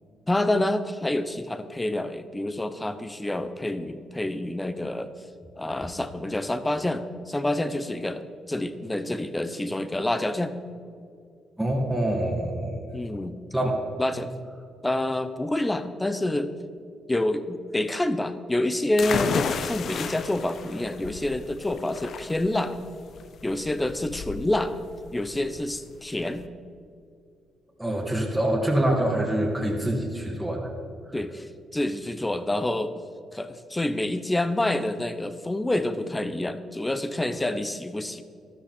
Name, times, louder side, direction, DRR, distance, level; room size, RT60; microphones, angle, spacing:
voice 1, 0.3-5.1 5.6-10.5 12.9-13.4 14.0-14.3 14.8-16.6 17.1-22.7 23.4-24.7 25.1-26.4 31.1-32.9 33.3-38.2, left 1 dB, 15° left, 11 dB, 0.8 m, -27 dB
voice 2, 11.6-12.8 13.5-13.8 27.8-30.7, right 1 dB, 5° right, -2 dB, 2.3 m, -25 dB
sound 1, 19.0-26.5, left 6 dB, 60° left, 0.7 m, -33 dB
13.0 x 13.0 x 4.4 m, 2.4 s
cardioid pair, 90°, 0 cm